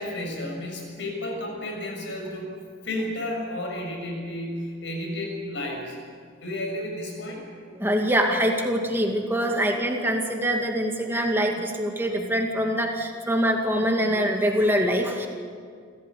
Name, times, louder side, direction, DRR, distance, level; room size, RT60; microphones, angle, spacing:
voice 1, 0.0-6.0 6.4-7.4, left 1 dB, 65° left, 1 dB, 6.8 m, -32 dB
voice 2, 7.8-15.3, equal, 10° right, 2 dB, 2.2 m, -24 dB
26.5 x 15.0 x 8.5 m, 2.1 s
head